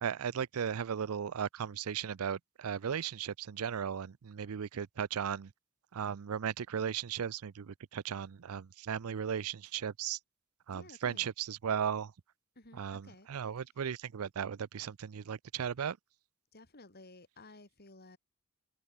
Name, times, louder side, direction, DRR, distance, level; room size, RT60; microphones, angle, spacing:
voice 1, 0.0-5.5 5.9-10.2 10.7-12.1 12.8-16.0, right 7 dB, 90° right, 0.5 m, -36 dB
voice 2, 10.7-11.3 12.6-13.3 16.5-18.2, left 2 dB, 50° left, 5.4 m, -54 dB
open air
head